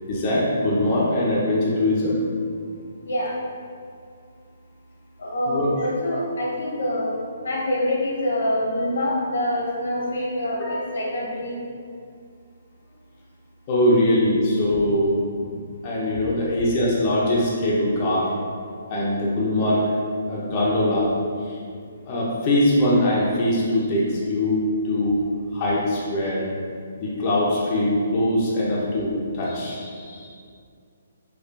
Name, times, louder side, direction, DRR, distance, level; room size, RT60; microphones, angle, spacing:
voice 1, 0.1-2.2 5.5-5.7 10.6-10.8 13.7-15.6 15.8-18.3 18.9-19.9 20.3-21.1 21.4-21.6 22.1-25.2 25.5-26.4 27.0-30.3, left 1 dB, 30° left, -6 dB, 0.6 m, -22 dB
voice 2, 3.0-3.4 5.2-7.2 7.4-11.6, left 1 dB, 85° left, -4 dB, 1.0 m, -25 dB
4.4 x 2.3 x 2.5 m, 2.2 s
hypercardioid pair, 160°, 0 cm